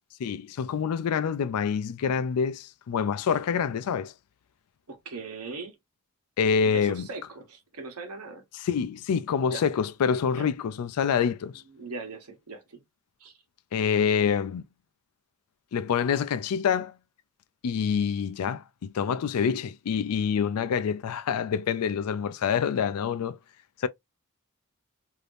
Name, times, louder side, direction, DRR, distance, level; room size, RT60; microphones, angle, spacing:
voice 1, 0.2-4.1 6.4-7.1 8.6-11.6 13.7-14.6 15.7-16.9 17.6-23.4 23.8-23.9, left 7 dB, 90° left, 0.4 m, -26 dB
voice 2, 4.9-5.8 6.6-8.4 9.5-9.6 10.3-10.5 11.7-12.8 13.2-13.4, right 3 dB, 90° right, 1.0 m, -39 dB
3.4 x 2.7 x 2.5 m
head